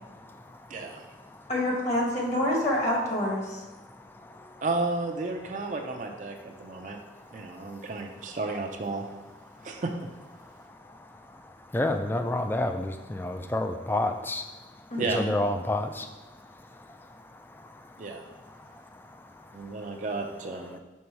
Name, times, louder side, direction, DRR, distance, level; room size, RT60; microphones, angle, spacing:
voice 1, 0.7-1.0 4.6-7.0 7.3-9.1 9.6-9.9 15.0-15.3 18.0-18.3 19.5-20.8, right 3 dB, 45° right, 3 dB, 0.5 m, -32 dB
voice 2, 1.5-3.6 14.9-15.3, left 1 dB, 40° left, -2 dB, 1.2 m, -27 dB
voice 3, 11.7-14.4 15.0-16.1, left 1 dB, 10° left, 6 dB, 0.3 m, -28 dB
5.4 x 3.8 x 4.6 m, 1.1 s
head